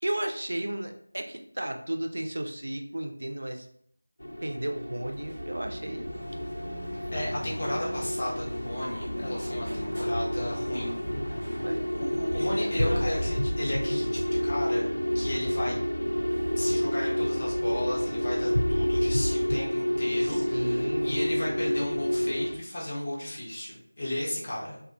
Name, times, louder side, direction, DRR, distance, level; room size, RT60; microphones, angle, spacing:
voice 1, 0.0-3.7 4.4-6.1 11.6-11.8 20.2-21.2, right 1 dB, 50° right, 4 dB, 0.3 m, -33 dB
sound 1, 4.2-22.6, equal, 65° left, 0.3 m, -29 dB
sound 2, 5.0-18.6, right 2 dB, 10° right, 0.7 m, -43 dB
sound 3, 6.0-13.4, equal, 80° left, 0.9 m, -39 dB
voice 2, 7.1-11.0 11.5-11.6 11.9-14.8 15.1-15.8 16.6-24.8, left 1 dB, 30° left, -5 dB, 0.6 m, -34 dB
2.3 x 2.1 x 2.5 m, 0.66 s
figure-of-eight pair, 170°, 0 cm